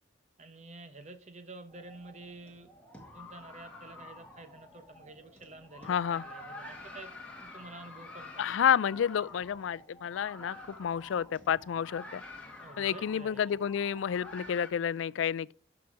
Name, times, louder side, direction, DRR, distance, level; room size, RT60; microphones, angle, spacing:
voice 1, 0.4-2.7 3.0-7.1 7.4-8.4 12.6-13.5, right 2 dB, 35° right, 1.0 m, -49 dB
sound 1, 1.7-14.7, left 2 dB, 5° left, 1.9 m, -49 dB
voice 2, 5.9-6.2 8.4-12.2 12.8-15.5, left 8 dB, 80° left, 0.3 m, -30 dB
12.5 x 5.9 x 4.7 m
head